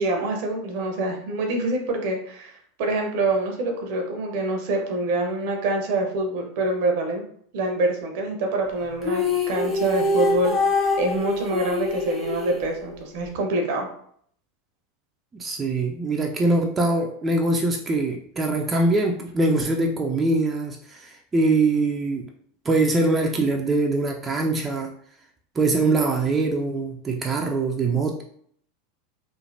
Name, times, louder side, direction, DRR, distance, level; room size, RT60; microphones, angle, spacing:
voice 1, 0.0-7.2 7.5-10.6 11.0-13.9, right 2 dB, 65° right, 3 dB, 0.7 m, -25 dB
sound 1, 9.0-13.3, left 3 dB, 15° left, 0.9 m, -25 dB
voice 2, 15.3-22.3 22.7-24.9 25.6-28.2, right 2 dB, 20° right, 1 dB, 0.4 m, -23 dB
3.1 x 2.0 x 2.6 m, 0.62 s
hypercardioid pair, 90°, 0 cm